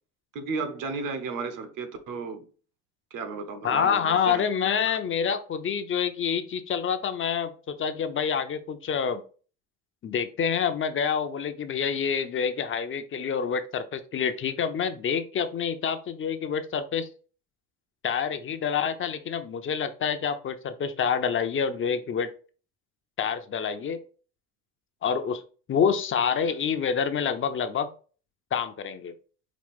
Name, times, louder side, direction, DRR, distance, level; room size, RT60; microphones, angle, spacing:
voice 1, 0.3-2.5 3.1-4.5 4.9-5.0, right 4 dB, 65° right, 1.0 m, -34 dB
voice 2, 3.6-9.2 10.0-17.1 18.0-22.3 23.2-24.0 25.0-25.4 25.7-27.9 28.5-29.1, left 7 dB, 35° left, 0.6 m, -27 dB
5.0 x 2.4 x 3.5 m
supercardioid pair, 85°, 35 cm